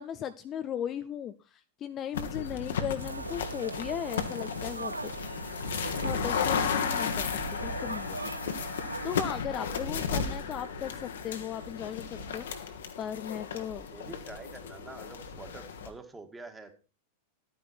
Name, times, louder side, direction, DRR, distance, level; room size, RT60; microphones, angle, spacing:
voice 1, 0.0-4.9 6.0-8.2 9.0-13.9, left 9 dB, 30° left, 11 dB, 0.6 m, -37 dB
sound 1, 2.1-15.9, left 6 dB, 65° left, 1.6 m, -34 dB
sound 2, 3.0-9.3, right 3 dB, 80° right, 0.5 m, -39 dB
voice 2, 13.9-16.7, right 3 dB, 10° right, 6 dB, 2.0 m, -46 dB
12.0 x 9.6 x 4.4 m, 0.33 s
figure-of-eight pair, 90°, 0 cm